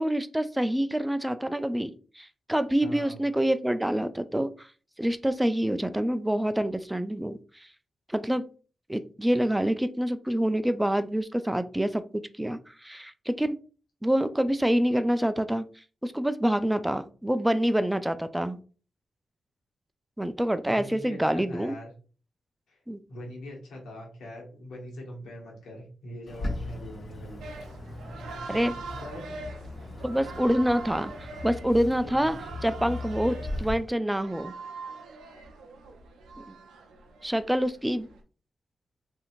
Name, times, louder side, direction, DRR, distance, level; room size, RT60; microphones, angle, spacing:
voice 1, 0.0-4.7 5.0-7.4 8.1-8.4 8.9-13.6 14.0-15.7 16.0-18.6 20.2-21.8 22.9-23.0 28.5-28.7 30.0-32.4 32.6-34.5 36.4-36.5 37.2-38.1, equal, 10° right, 11 dB, 0.3 m, -26 dB
voice 2, 2.8-3.2 20.6-21.9 22.7-22.8 23.1-27.4 29.0-29.3 32.0-32.3, equal, 85° left, -1 dB, 1.1 m, -42 dB
Bird, 26.3-33.7, left 2 dB, 45° left, 1.1 m, -38 dB
sound 1, 27.4-38.2, right 4 dB, 85° right, 0.4 m, -43 dB
2.8 x 2.7 x 2.5 m, 0.38 s
cardioid pair, 55°, 0 cm